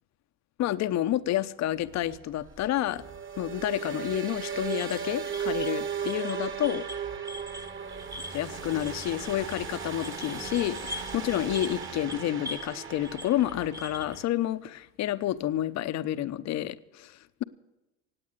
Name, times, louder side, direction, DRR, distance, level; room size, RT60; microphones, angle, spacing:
voice 1, 0.6-3.0 3.4-6.9 8.3-17.4, left 13 dB, 45° left, 0.9 m, -29 dB
sound 1, 1.8-14.3, right 7 dB, 30° right, 2.0 m, -37 dB
sound 2, 4.7-12.8 13.0-14.2, left 1 dB, 10° right, 1.0 m, -43 dB
18.0 x 8.7 x 8.2 m
supercardioid pair, 90°, 38 cm